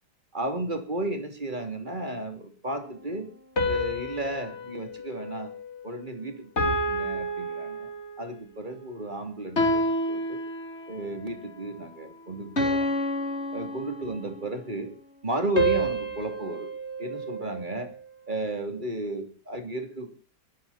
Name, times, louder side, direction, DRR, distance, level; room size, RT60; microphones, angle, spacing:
voice 1, 0.3-3.3 3.6-5.5 5.8-7.9 8.2-10.4 10.9-12.9 13.5-14.9 15.2-16.7 17.0-17.9 18.3-20.1, right 1 dB, 25° right, 6 dB, 3.3 m, -33 dB
sound 1, 3.6-6.1 6.6-8.3 9.6-11.1 12.6-14.4 15.6-17.9, equal, 40° left, 3.6 m, -29 dB
22.0 x 14.0 x 4.3 m, 0.39 s
omnidirectional pair, 1.8 m